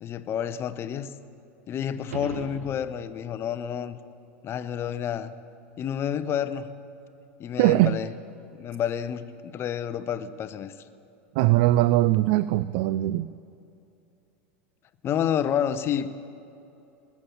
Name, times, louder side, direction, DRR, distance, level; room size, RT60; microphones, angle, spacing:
voice 1, 0.0-1.1 1.7-4.0 4.4-5.3 5.8-6.7 7.4-8.1 8.5-10.7 15.0-16.1, left 9 dB, 35° left, 13 dB, 0.7 m, -29 dB
sound 1, 2.0-3.2 8.1-8.2, right 3 dB, 85° right, 1.7 m, -39 dB
voice 2, 7.6-8.0 11.4-13.3, right 16 dB, 60° right, 16 dB, 0.3 m, -21 dB
20.5 x 7.2 x 7.2 m, 2.8 s
hypercardioid pair, 95°, 7 cm